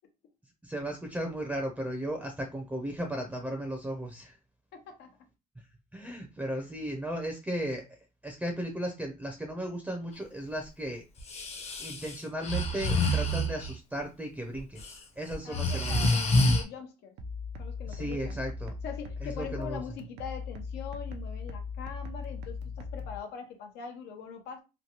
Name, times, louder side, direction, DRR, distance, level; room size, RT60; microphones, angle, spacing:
voice 1, 0.6-4.4 5.9-11.0 11.4-11.5 11.8-16.2 17.9-18.7 19.2-19.8, right 1 dB, 5° right, 0.6 m, -36 dB
voice 2, 4.7-5.3 6.5-6.6 15.4-17.1 17.6-18.4 18.8-24.6, left 6 dB, 80° left, 0.8 m, -42 dB
Breathing, 11.2-13.7 14.6-14.9 15.3-16.6, left 1 dB, 40° left, 0.8 m, -27 dB
sound 1, 17.2-23.2, left 4 dB, 90° right, 0.6 m, -39 dB
3.1 x 2.2 x 2.8 m
cardioid pair, 110°, 17 cm